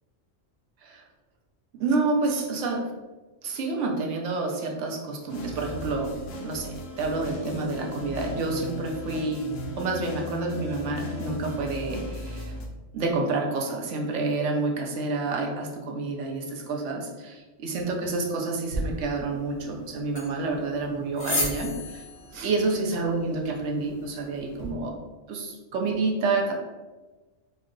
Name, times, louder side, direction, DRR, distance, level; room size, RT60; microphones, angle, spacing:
voice 1, 1.8-2.9 3.4-6.2 6.4-9.5 9.8-12.5 12.9-22.0 22.3-25.0 25.3-26.5, right 3 dB, 75° right, 1 dB, 1.0 m, -29 dB
sound 1, 5.3-12.7, left 1 dB, 80° left, 1.0 m, -36 dB
sound 2, 18.7-24.7, left 1 dB, 60° left, 1.3 m, -35 dB
4.4 x 2.1 x 3.7 m, 1.2 s
omnidirectional pair, 1.3 m